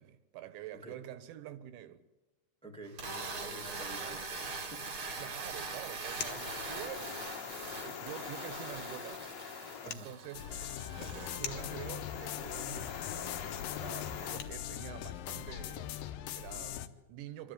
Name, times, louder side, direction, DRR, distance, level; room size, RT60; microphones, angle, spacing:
voice 1, 0.0-2.0 4.0-4.2 5.2-9.2 9.9-10.7 11.0-17.5, right 12 dB, 80° right, 3.4 m, -47 dB
voice 2, 2.6-3.1 3.4-5.1 9.8-10.1, right 1 dB, 5° left, 0.4 m, -49 dB
sound 1, 2.9-11.4, right 3 dB, 45° right, 1.8 m, -42 dB
sound 2, 5.8-14.5, left 7 dB, 75° left, 1.5 m, -43 dB
sound 3, 10.3-16.9, left 11 dB, 90° left, 2.0 m, -41 dB
24.5 x 14.0 x 9.2 m
omnidirectional pair, 5.2 m